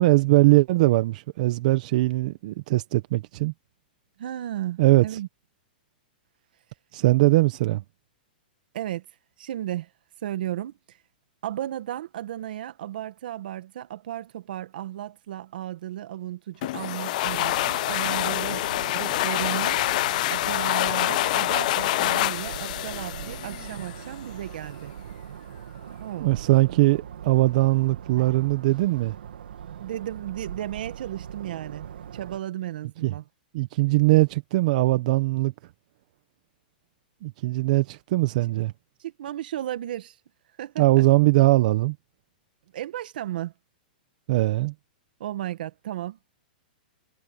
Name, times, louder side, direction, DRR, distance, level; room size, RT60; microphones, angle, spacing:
voice 1, 0.0-3.5 4.8-5.0 6.9-7.8 26.2-29.2 33.0-33.1 33.5-35.5 37.2-38.7 40.8-41.9 44.3-44.7, right 19 dB, 50° right, 1.1 m, -21 dB
voice 2, 4.2-5.3 8.7-9.1 9.4-9.9 10.2-11.0 11.4-18.7 18.9-19.8 20.3-24.9 26.0-26.4 26.7-26.8 29.8-31.9 32.1-33.3 39.0-40.2 40.6-41.1 42.7-43.5 45.2-46.2, right 12 dB, 70° right, 2.0 m, -34 dB
sound 1, 16.6-24.1, left 17 dB, 50° left, 0.4 m, -26 dB
sound 2, 17.2-32.4, right 9 dB, 85° right, 2.8 m, -41 dB
hypercardioid pair, 150°, 5 cm